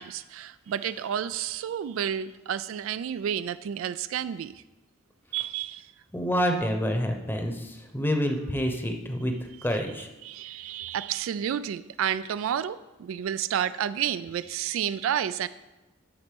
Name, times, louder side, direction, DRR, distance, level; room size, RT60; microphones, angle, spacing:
voice 1, 0.0-4.6 5.3-5.8 9.6-15.5, right 9 dB, 75° right, 15 dB, 0.3 m, -31 dB
voice 2, 6.1-7.5 7.9-9.3 9.6-10.1, equal, 10° left, 4 dB, 0.9 m, -27 dB
12.0 x 4.1 x 5.2 m, 1.1 s
head